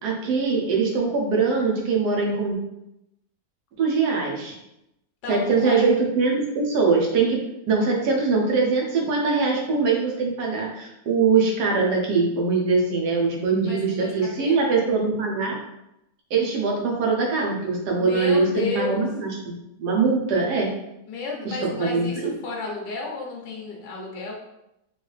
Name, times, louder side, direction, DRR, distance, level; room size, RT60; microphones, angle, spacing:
voice 1, 0.0-2.6 3.8-4.5 5.3-7.4 7.7-15.6 16.3-19.5 19.8-20.7 21.4-22.3, right 4 dB, 70° right, -1 dB, 1.4 m, -22 dB
voice 2, 5.2-5.9 13.6-14.6 18.0-19.0 21.1-24.3, left 4 dB, 80° left, -1 dB, 1.4 m, -32 dB
4.5 x 2.7 x 3.2 m, 0.86 s
omnidirectional pair, 1.9 m